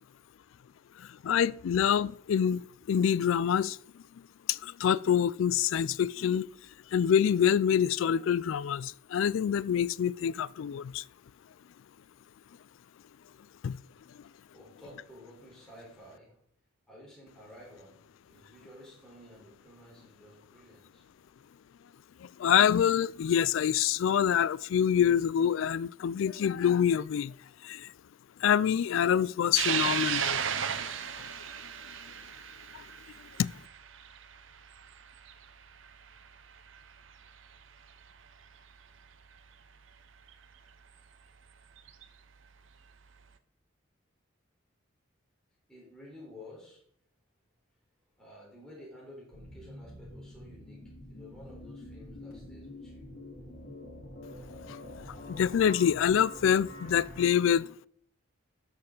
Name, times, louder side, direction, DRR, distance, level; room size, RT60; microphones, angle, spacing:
voice 1, 1.0-3.8 4.5-6.5 6.9-11.0 13.6-13.8 22.2-27.3 27.6-27.9 28.4-30.7 31.2-31.3 32.7-32.8 33.4-33.5 54.7-54.8 55.3-57.7, left 8 dB, 70° left, 0.3 m, -26 dB
voice 2, 14.5-16.4 16.9-18.0 18.2-21.3 45.7-46.8 48.2-53.0, left 1 dB, 5° left, 3.9 m, -52 dB
sound 1, 29.6-36.2 36.7-36.8 38.0-38.1 40.3-40.4 41.8-42.0, right 8 dB, 65° right, 0.7 m, -34 dB
sound 2, 49.3-57.3, left 1 dB, 50° left, 2.8 m, -46 dB
13.0 x 6.7 x 3.9 m
head